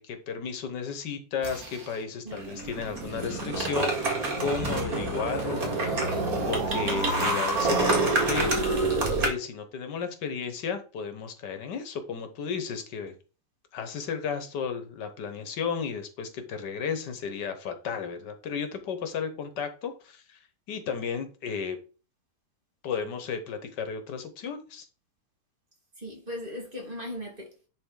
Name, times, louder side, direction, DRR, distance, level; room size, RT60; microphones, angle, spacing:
voice 1, 0.0-6.2 6.5-8.8 9.2-13.1 13.7-20.4 20.7-21.8 22.8-24.9, left 6 dB, 75° left, 1.6 m, -34 dB
sound 1, 1.4-1.9 2.3-9.3, right 2 dB, 55° right, 2.4 m, -27 dB
voice 2, 2.2-2.6 26.0-27.7, left 1 dB, 30° right, 1.9 m, -38 dB
10.0 x 4.0 x 3.8 m
omnidirectional pair, 1.9 m